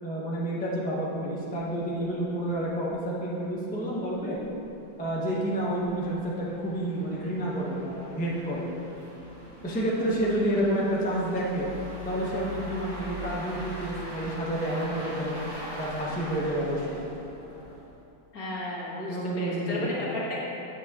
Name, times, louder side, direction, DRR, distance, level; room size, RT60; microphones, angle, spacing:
voice 1, 0.0-4.4 5.0-8.7 9.6-11.7 12.1-15.4 15.8-17.0 19.1-20.1, right 1 dB, 10° left, -6 dB, 0.4 m, -29 dB
sound 1, 2.0-2.1 2.5-2.6 2.9-3.0 3.6-18.0, equal, 20° right, 1.0 m, -42 dB
voice 2, 10.3-10.7 18.3-20.4, left 1 dB, 50° left, -6 dB, 1.7 m, -33 dB
8.2 x 7.1 x 2.9 m, 2.9 s
omnidirectional pair, 2.1 m